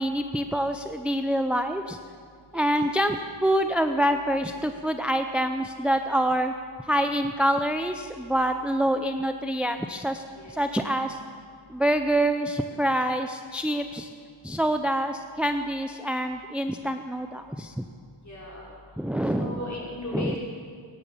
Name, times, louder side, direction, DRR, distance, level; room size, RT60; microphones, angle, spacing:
voice 1, 0.0-2.0 2.5-6.5 6.8-11.2 11.7-14.1 14.4-17.8 19.0-19.6 20.1-20.4, right 1 dB, ahead, 7 dB, 0.6 m, -26 dB
voice 2, 18.3-18.6 19.4-20.4, left 2 dB, 35° left, -5 dB, 5.4 m, -36 dB
18.0 x 10.5 x 7.1 m, 2.2 s
wide cardioid pair, 50°, 50 cm